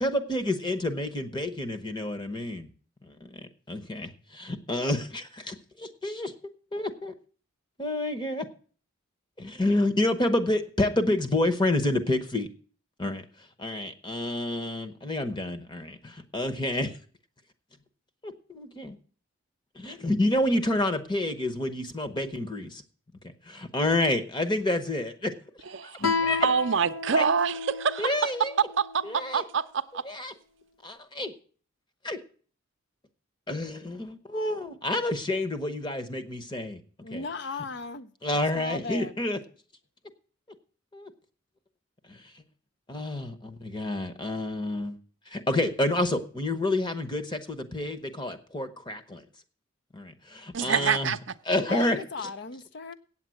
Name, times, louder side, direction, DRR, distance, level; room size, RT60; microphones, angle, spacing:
voice 1, 0.0-2.7 3.0-7.1 7.8-8.5 9.4-12.5 13.0-13.2 13.6-16.9 18.2-19.0 19.7-22.8 23.2-25.9 26.2-26.5 27.1-27.2 28.0-28.6 29.0-29.4 30.0-30.3 30.8-31.3 32.0-32.2 33.5-36.8 37.1-37.6 38.2-39.4 40.9-41.1 42.1-42.2 42.9-45.0 45.3-49.2 49.9-51.1 51.4-52.3, left 1 dB, 20° left, 0.9 m, -29 dB
voice 2, 25.7-26.1 26.4-28.1 28.8-30.0 50.5-51.2, right 6 dB, 60° right, 0.6 m, -26 dB
Guitar, 26.0-29.3, left 4 dB, 85° left, 0.9 m, -32 dB
voice 3, 37.0-38.1 38.6-39.1 51.7-52.9, left 4 dB, 55° left, 0.6 m, -36 dB
8.8 x 7.4 x 7.6 m
head